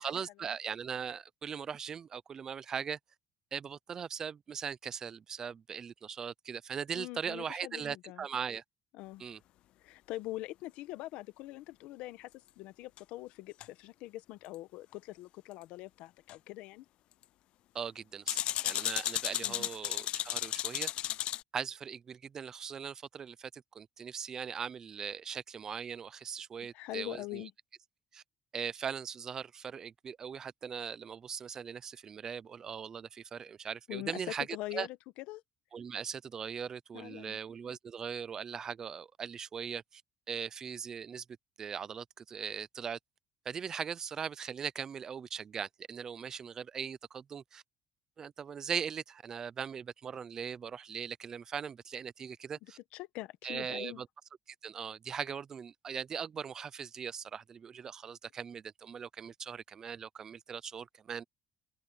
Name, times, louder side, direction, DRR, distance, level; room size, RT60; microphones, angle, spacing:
voice 1, 0.0-3.0 3.5-8.6 9.2-9.4 17.7-20.9 21.5-27.5 28.1-28.2 28.5-34.5 34.7-34.9 35.7-40.0 40.3-41.2 41.6-43.0 43.5-47.6 48.2-52.8 53.4-54.1 54.6-61.2, right 7 dB, 30° right, 0.4 m, -40 dB
voice 2, 6.9-8.2 8.9-9.2 9.8-12.3 12.6-16.8 19.4-19.7 26.7-27.5 33.9-34.2 34.5-35.0 35.3-35.4 36.9-37.4 52.9-54.0, left 17 dB, 85° left, 1.0 m, -43 dB
sound 1, 13.0-13.1 13.6-13.7 16.3-16.4 18.3-21.4, left 14 dB, 55° left, 0.3 m, -34 dB
open air
cardioid pair, 170°, 2 cm